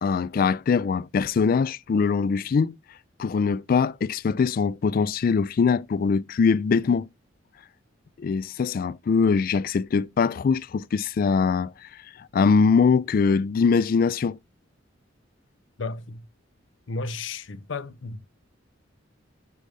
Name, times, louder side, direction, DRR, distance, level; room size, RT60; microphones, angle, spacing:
voice 1, 0.0-2.8 3.2-7.1 8.2-11.7 12.3-14.4, left 5 dB, 50° left, 0.3 m, -22 dB
voice 2, 15.8-16.3 16.9-18.2, left 3 dB, 80° left, 0.6 m, -33 dB
6.9 x 6.3 x 3.3 m
head